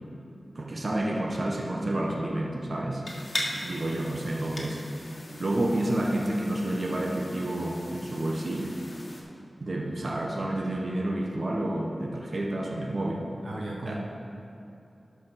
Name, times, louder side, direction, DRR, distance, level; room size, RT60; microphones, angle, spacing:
voice 1, 0.5-3.0 3.5-4.8 5.4-8.8 9.6-13.2 13.9-14.0, right 1 dB, 50° right, -1 dB, 1.1 m, -29 dB
sound 1, 3.1-9.2, left 1 dB, 50° left, 1.6 m, -39 dB
voice 2, 12.9-14.0, right 1 dB, 75° right, -1 dB, 1.1 m, -37 dB
12.0 x 5.3 x 5.4 m, 2.8 s
wide cardioid pair, 75°, 0 cm